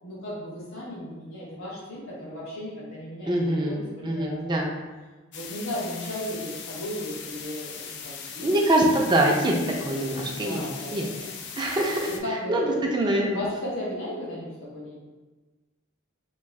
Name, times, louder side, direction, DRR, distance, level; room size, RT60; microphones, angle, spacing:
voice 1, 0.0-4.7 5.3-8.5 10.3-11.3 12.1-15.0, left 1 dB, 75° left, -6 dB, 1.3 m, -35 dB
voice 2, 3.3-4.7 8.4-9.6 9.9-10.6 10.9-11.1 11.6-12.1 12.5-13.4, right 1 dB, 20° right, -1 dB, 0.4 m, -24 dB
sound 1, 5.3-12.2, left 6 dB, 55° left, 0.4 m, -39 dB
3.1 x 2.5 x 3.6 m, 1.2 s
head